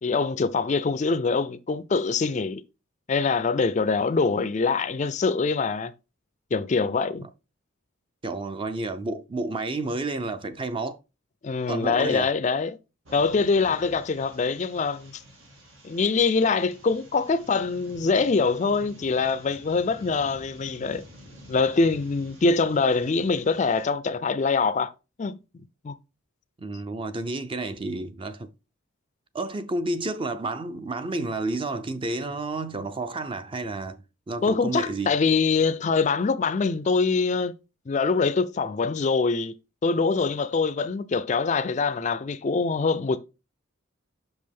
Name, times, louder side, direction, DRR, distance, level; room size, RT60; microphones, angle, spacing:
voice 1, 0.0-2.6 3.1-5.9 6.5-7.3 11.4-12.8 13.1-15.2 15.8-21.0 21.5-24.9 25.2-25.4 25.8-26.0 34.4-37.5 37.9-39.5 39.8-43.2, left 4 dB, 35° left, 0.4 m, -24 dB
voice 2, 8.2-11.0 11.7-12.3 26.6-28.5 29.3-35.1, right 2 dB, 25° right, 0.4 m, -31 dB
sound 1, 13.0-23.9, equal, 80° right, 2.0 m, -48 dB
6.2 x 5.3 x 3.4 m
head